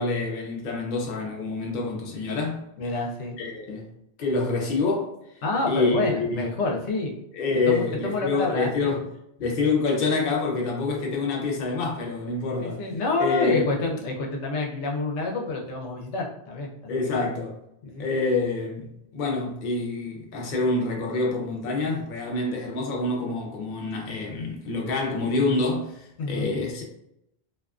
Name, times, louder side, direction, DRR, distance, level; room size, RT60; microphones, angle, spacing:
voice 1, 0.0-2.7 3.4-3.9 4.2-5.1 5.7-6.4 7.3-9.0 9.4-12.8 13.2-13.7 16.9-17.5 18.0-26.8, left 3 dB, 55° left, 0.7 m, -27 dB
voice 2, 2.8-3.4 5.4-7.2 7.5-8.7 12.6-17.1 17.8-18.0 26.2-26.5, left 3 dB, 80° left, 0.9 m, -28 dB
2.6 x 2.3 x 2.3 m
omnidirectional pair, 1.2 m